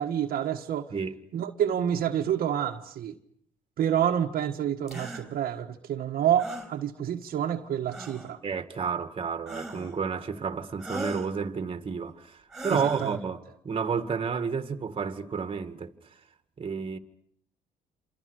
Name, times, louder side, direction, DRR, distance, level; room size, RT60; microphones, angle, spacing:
voice 1, 0.0-0.9 1.3-3.1 3.8-8.4 12.7-13.2, right 10 dB, 60° right, 1.6 m, -28 dB
sound 1, 4.9-5.2 6.4-6.7 7.9-8.3 9.5-10.0 10.8-11.3 12.5-13.2, right 1 dB, 5° right, 5.4 m, -38 dB
voice 2, 8.4-15.9 16.6-17.0, right 6 dB, 30° right, 2.2 m, -31 dB
28.0 x 27.5 x 6.6 m
cardioid pair, 110°, 17 cm